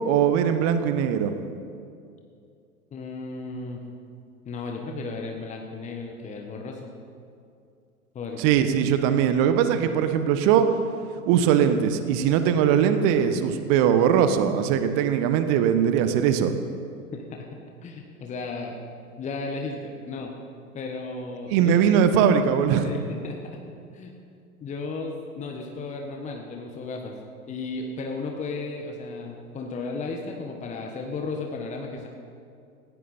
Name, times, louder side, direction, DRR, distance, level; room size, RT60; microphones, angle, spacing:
voice 1, 0.0-1.4 8.4-10.7 11.3-16.5 21.5-22.9, right 8 dB, 35° right, 9 dB, 1.2 m, -21 dB
voice 2, 2.9-3.8 4.4-6.9 8.1-8.4 17.1-18.8 19.2-20.3 20.7-21.9 22.8-23.6 23.9-24.2 24.6-27.2 27.5-32.1, left 3 dB, 15° left, 2 dB, 1.3 m, -34 dB
18.0 x 16.0 x 4.4 m, 2.4 s
figure-of-eight pair, 100°, 45 cm